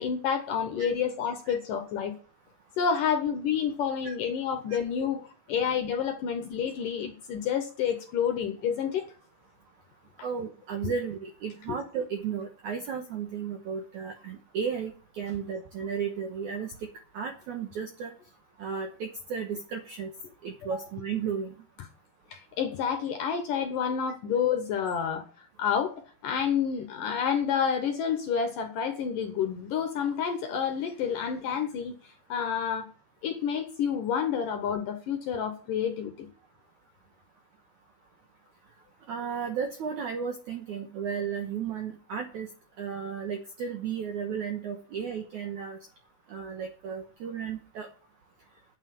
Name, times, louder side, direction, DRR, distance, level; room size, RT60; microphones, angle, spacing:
voice 1, 0.0-2.1 2.8-5.2 5.5-9.1 10.8-10.9 20.6-20.8 22.3-25.2 25.6-25.9 26.2-31.9 32.3-32.9 33.2-36.3, left 7 dB, 70° left, 6 dB, 2.2 m, -29 dB
voice 2, 10.2-16.7 17.1-18.1 18.6-20.1 20.4-21.5 39.1-42.5 42.8-45.8 46.3-47.9, right 7 dB, 75° right, 5 dB, 1.8 m, -34 dB
9.3 x 8.1 x 7.5 m, 0.41 s
omnidirectional pair, 5.0 m